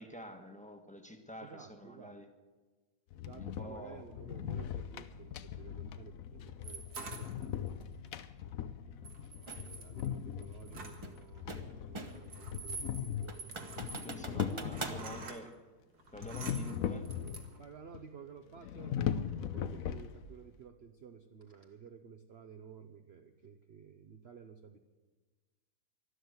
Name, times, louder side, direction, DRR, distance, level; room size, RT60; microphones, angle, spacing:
voice 1, 0.0-2.3 3.4-4.0 14.0-15.5 16.1-17.0, equal, 5° left, 5 dB, 1.3 m, -48 dB
voice 2, 1.4-2.2 3.3-7.6 9.5-13.9 14.3-15.3 17.6-19.0 19.4-24.8, right 6 dB, 50° right, 6 dB, 0.9 m, -53 dB
sound 1, 3.1-15.3 16.1-17.6 17.9-18.0 18.6-20.5, left 9 dB, 65° left, 1.1 m, -40 dB
sound 2, 6.6-7.8 9.0-11.2 12.1-15.4 15.9-17.6, right 4 dB, 90° right, 2.3 m, -47 dB
sound 3, 9.5-9.7 11.0-12.3 12.7-12.8 13.3-15.0, right 2 dB, 20° right, 1.0 m, -43 dB
13.0 x 12.0 x 8.0 m, 1.3 s
omnidirectional pair, 1.7 m